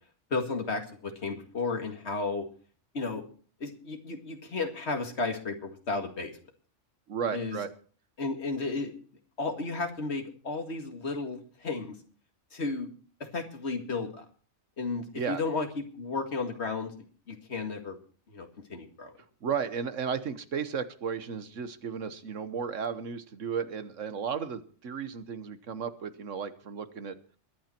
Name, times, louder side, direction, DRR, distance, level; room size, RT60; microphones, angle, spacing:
voice 1, 0.3-2.4 2.9-3.2 3.6-6.3 7.3-7.6 8.2-8.9 9.4-12.0 12.5-12.9 13.2-14.3 14.8-16.9 17.3-18.0 18.3-19.1, left 3 dB, 55° left, 5 dB, 2.3 m, -33 dB
voice 2, 7.1-7.7 15.1-15.4 19.4-27.2, right 6 dB, 70° right, 12 dB, 1.4 m, -34 dB
22.0 x 8.9 x 4.4 m, 0.42 s
omnidirectional pair, 1.3 m